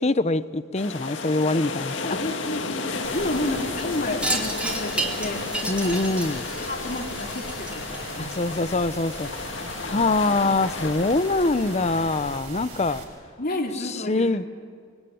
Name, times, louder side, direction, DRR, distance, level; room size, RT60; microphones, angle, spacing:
voice 1, 0.0-2.2 5.7-6.5 8.2-9.3 9.8-13.0 13.8-14.5, left 2 dB, 35° left, 0.8 m, -24 dB
sound 1, 0.7-12.4, left 4 dB, 70° left, 2.0 m, -33 dB
voice 2, 2.0-5.7 6.6-8.3 9.6-10.1 12.9-13.0 13.4-14.3, left 1 dB, 50° left, 2.9 m, -31 dB
sound 2, 3.0-13.0, right 2 dB, 35° right, 6.3 m, -40 dB
Wind chime, 4.2-8.8, right 2 dB, 5° right, 2.8 m, -31 dB
25.0 x 23.5 x 9.6 m
head